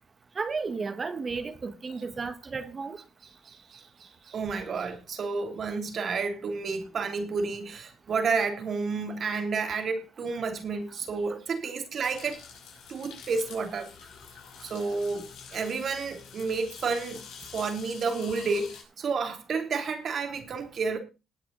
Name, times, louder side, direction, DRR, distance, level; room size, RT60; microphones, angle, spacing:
voice 1, 0.4-3.0, right 4 dB, 35° right, 1.8 m, -33 dB
voice 2, 3.4-12.4 12.9-13.9 14.6-17.2 17.5-21.0, right 4 dB, 55° right, 3.2 m, -31 dB
sound 1, 12.0-18.8, left 6 dB, 90° left, 5.5 m, -47 dB
19.5 x 6.9 x 4.2 m
cardioid pair, 90°, 0 cm